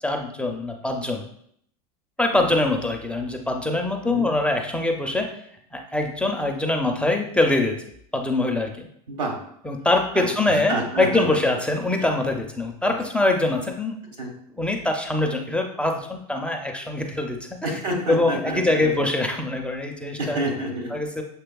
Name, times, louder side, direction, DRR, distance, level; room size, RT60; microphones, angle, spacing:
voice 1, 0.0-1.3 2.2-5.3 5.7-7.8 8.1-8.9 9.6-14.0 14.6-17.6 18.1-20.4 20.9-21.2, left 2 dB, 5° left, 2 dB, 0.4 m, -23 dB
voice 2, 9.1-9.4 10.1-11.4 12.0-12.1 14.1-14.3 17.6-18.9 20.2-21.0, right 1 dB, 85° right, 1 dB, 1.4 m, -29 dB
6.8 x 3.1 x 2.3 m, 0.67 s
supercardioid pair, 115°, 20 cm